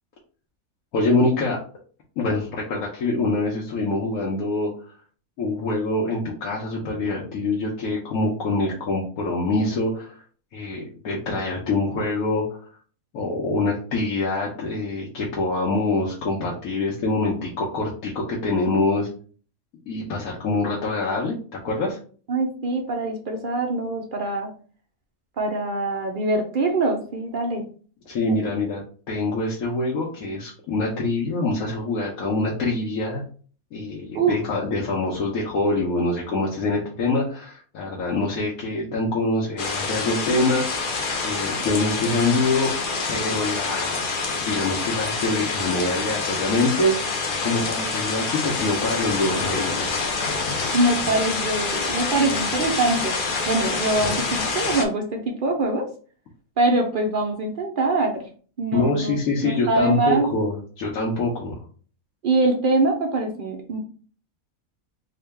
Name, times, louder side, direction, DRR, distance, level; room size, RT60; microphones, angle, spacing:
voice 1, 0.9-1.6 2.2-4.7 5.4-10.2 10.5-12.4 13.1-19.1 19.9-22.0 28.1-28.8 29.1-33.2 33.7-40.9 41.2-42.7 43.1-44.1 44.4-50.0 58.7-61.6, left 2 dB, 80° left, -3 dB, 1.2 m, -25 dB
voice 2, 22.3-24.5 25.4-27.6 34.1-34.4 50.7-55.9 56.6-58.2 58.6-59.2 59.4-60.3 62.2-63.8, right 2 dB, 65° right, 2 dB, 0.5 m, -23 dB
sound 1, 39.6-54.9, left 4 dB, 60° left, 0.5 m, -27 dB
3.7 x 2.2 x 3.4 m, 0.42 s
omnidirectional pair, 1.5 m